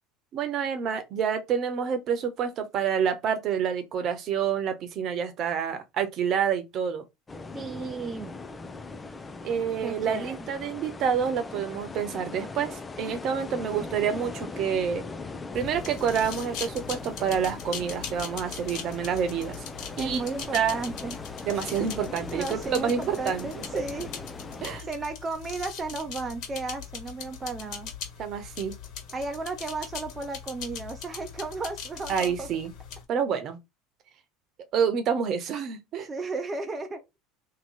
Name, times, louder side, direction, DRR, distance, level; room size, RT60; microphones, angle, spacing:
voice 1, 0.3-7.0 9.4-15.0 15.5-19.6 20.0-20.2 20.5-20.8 21.4-23.8 24.6-24.9 28.2-28.7 32.1-32.7 33.1-33.6 34.7-36.1, right 7 dB, 50° right, 1.0 m, -28 dB
sound 1, 7.3-24.8, left 3 dB, 20° left, 0.5 m, -40 dB
voice 2, 7.5-8.3 9.8-10.5 20.0-21.1 22.3-24.1 24.8-27.9 29.1-32.5 36.1-37.0, right 3 dB, 25° right, 0.8 m, -34 dB
sound 2, 15.5-33.0, left 7 dB, 60° left, 1.6 m, -41 dB
3.0 x 3.0 x 4.1 m
hypercardioid pair, 80°, 0 cm